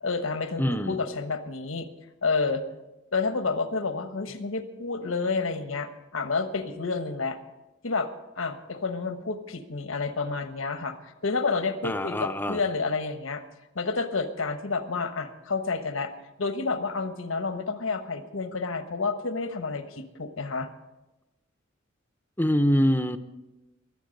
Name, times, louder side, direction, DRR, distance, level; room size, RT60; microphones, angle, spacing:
voice 1, 0.0-1.9 2.2-2.6 3.1-7.4 7.8-8.1 8.4-13.4 13.7-16.1 16.4-20.7, left 4 dB, 90° left, 9 dB, 1.2 m, -29 dB
voice 2, 0.6-1.0 11.8-12.6 22.4-23.2, equal, 10° left, 10 dB, 0.6 m, -24 dB
22.0 x 8.4 x 5.3 m, 1.0 s
head